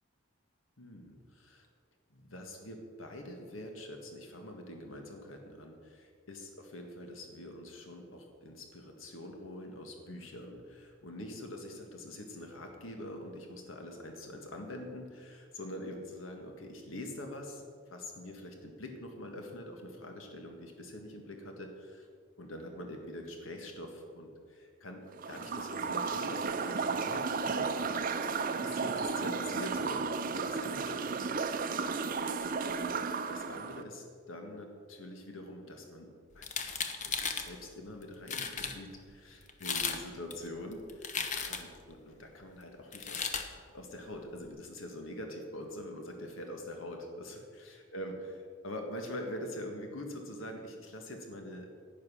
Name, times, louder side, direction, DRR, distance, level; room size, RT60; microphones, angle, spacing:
voice 1, 0.8-1.7 2.1-22.1 22.4-28.0 28.5-31.4 32.6-33.0 33.3-36.8 37.1-43.3 43.7-51.7, left 1 dB, 85° left, 3 dB, 1.7 m, -44 dB
sound 1, 25.2-33.8, right 4 dB, 45° right, 0.5 m, -34 dB
sound 2, 36.4-37.5 38.0-38.1 38.3-38.8 39.5-40.0 40.3-41.8 42.9-43.5, left 6 dB, 40° left, 0.9 m, -35 dB
10.5 x 9.4 x 6.3 m, 2.1 s
head